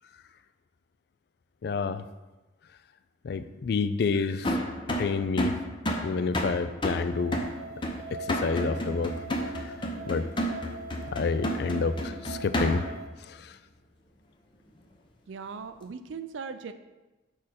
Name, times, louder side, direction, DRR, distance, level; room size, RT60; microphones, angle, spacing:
voice 1, 1.6-2.1 3.2-4.6 4.9-5.6 6.0-7.5 8.1-9.1 9.6-9.7 10.1-10.3 11.1-12.9 13.3-13.5, left 4 dB, 55° left, 13 dB, 0.3 m, -29 dB
sound 1, 4.4-13.0, equal, 25° left, 0.6 m, -31 dB
sound 2, 7.1-13.1, right 3 dB, 50° right, 0.9 m, -42 dB
voice 2, 15.3-16.7, right 5 dB, 75° right, 11 dB, 0.4 m, -39 dB
6.3 x 5.0 x 4.3 m, 1.1 s
head